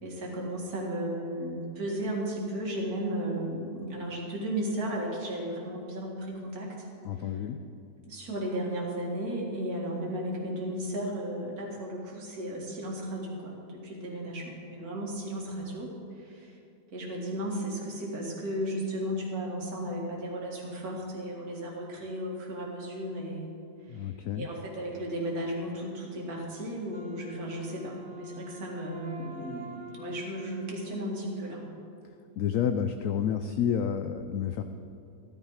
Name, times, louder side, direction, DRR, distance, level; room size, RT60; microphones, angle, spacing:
voice 1, 0.0-6.9 7.2-7.4 8.0-16.6 16.9-23.5 23.8-31.6, right 1 dB, 55° right, -2 dB, 2.6 m, -35 dB
voice 2, 7.0-7.6 23.9-24.5 32.4-34.6, left 8 dB, 70° left, 8 dB, 0.8 m, -29 dB
Wind instrument woodwind instrument, 26.9-31.9, equal, 80° right, 2.3 m, -45 dB
14.5 x 12.0 x 4.8 m, 2.6 s
omnidirectional pair, 1.8 m